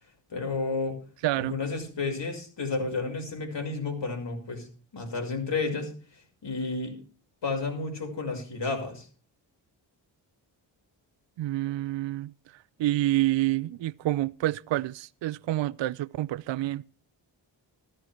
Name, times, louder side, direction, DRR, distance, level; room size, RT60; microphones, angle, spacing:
voice 1, 0.3-1.0 1.4-4.7 4.9-5.9 6.4-7.0 7.4-9.1, left 3 dB, 60° left, 6.0 m, -31 dB
voice 2, 1.2-1.6 11.4-12.3 12.8-16.8, right 15 dB, 65° right, 0.6 m, -28 dB
14.0 x 13.0 x 4.4 m
supercardioid pair, 50°, 48 cm